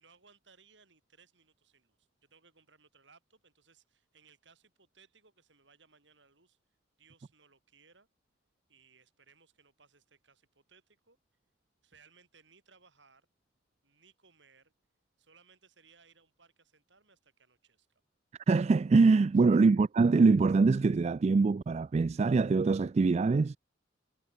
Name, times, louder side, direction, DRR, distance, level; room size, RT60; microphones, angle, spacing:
voice 1, 0.0-6.6 7.0-8.1 8.7-11.2 11.8-13.3 13.8-14.7 15.2-18.0 19.3-19.6, right 5 dB, 65° right, 7.4 m, -64 dB
voice 2, 18.5-23.6, right 4 dB, 35° right, 0.3 m, -24 dB
head